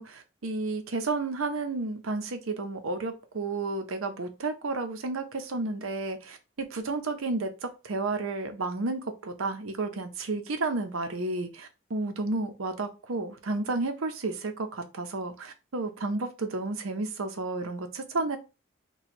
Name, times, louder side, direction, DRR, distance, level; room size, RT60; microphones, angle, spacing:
voice 1, 0.0-18.4, right 3 dB, 90° right, 7 dB, 0.7 m, -32 dB
2.9 x 2.3 x 4.2 m, 0.28 s
head